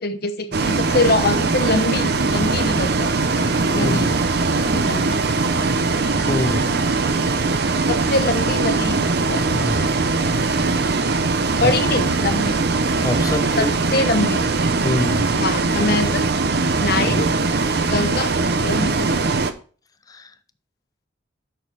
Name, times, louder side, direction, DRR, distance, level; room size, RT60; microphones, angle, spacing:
voice 1, 0.0-4.1 4.7-5.1 7.9-9.0 9.3-9.9 11.6-12.6 13.6-14.4 15.4-16.3 16.8-17.3 17.9-18.3 18.6-19.3, left 2 dB, 50° left, 1.0 m, -24 dB
Bus, 0.5-19.5, right 3 dB, 55° right, 0.7 m, -21 dB
voice 2, 3.7-4.1 6.3-6.7 9.5-9.9 11.6-12.0 13.0-13.7 14.8-15.3 17.0-17.2 20.1-20.3, left 2 dB, 20° left, 0.5 m, -25 dB
7.7 x 6.3 x 4.2 m
head